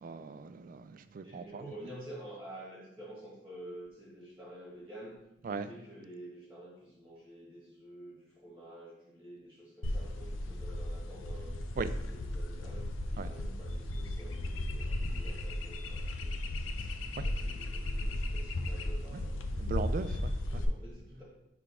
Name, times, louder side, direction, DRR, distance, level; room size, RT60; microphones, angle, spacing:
voice 1, 0.0-1.6 5.4-5.7 11.8-11.9 13.2-13.3 19.6-20.6, right 5 dB, 45° right, 0.3 m, -38 dB
voice 2, 1.2-5.2 5.4-11.6 12.1-12.8 13.1-16.9 17.2-20.0 20.5-21.2, right 1 dB, 10° right, 1.2 m, -49 dB
sound 1, 9.8-20.6, left 1 dB, 90° left, 0.6 m, -35 dB
5.9 x 3.4 x 4.9 m
head